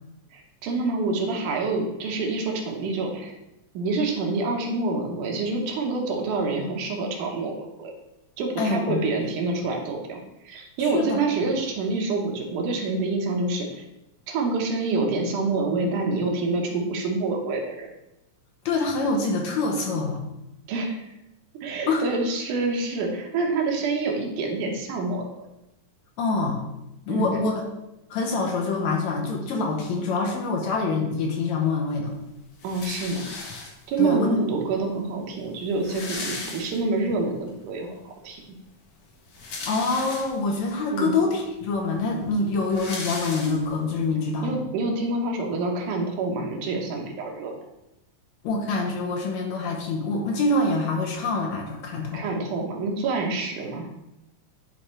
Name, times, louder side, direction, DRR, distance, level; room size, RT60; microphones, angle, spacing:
voice 1, 0.3-3.3 3.7-7.9 8.4-10.2 10.4-13.8 14.3-17.9 20.7-21.0 21.6-25.2 27.1-27.3 32.6-33.3 33.9-38.4 40.9-41.2 44.4-47.6 52.1-53.9, right 3 dB, 80° right, 1 dB, 2.6 m, -27 dB
voice 2, 8.6-9.0 10.8-11.2 18.7-20.2 21.9-22.0 26.2-26.6 27.1-27.5 28.1-32.1 34.0-34.3 39.7-44.6 48.4-52.2, left 3 dB, 70° left, 0 dB, 2.2 m, -25 dB
sound 1, 32.6-34.0 34.9-35.0 35.2-35.3 35.6-37.1 37.6-37.7 39.1-40.6 41.2-41.3 41.6-44.0, left 3 dB, 85° left, 0.9 m, -36 dB
10.5 x 3.5 x 4.3 m, 0.90 s
omnidirectional pair, 3.6 m